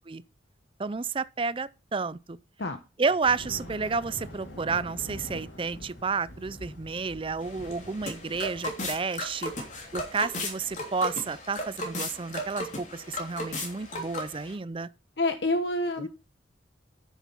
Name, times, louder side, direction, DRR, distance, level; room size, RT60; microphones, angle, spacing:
voice 1, 0.8-2.4 3.0-9.5 9.9-14.9 16.0-16.1, right 4 dB, 30° right, 0.5 m, -31 dB
Thunder, 3.2-14.3, equal, 85° left, 4.1 m, -46 dB
sound 1, 7.4-14.5, left 1 dB, 40° left, 3.0 m, -36 dB
voice 2, 15.2-16.1, left 2 dB, 60° left, 1.0 m, -27 dB
10.0 x 7.2 x 5.5 m
head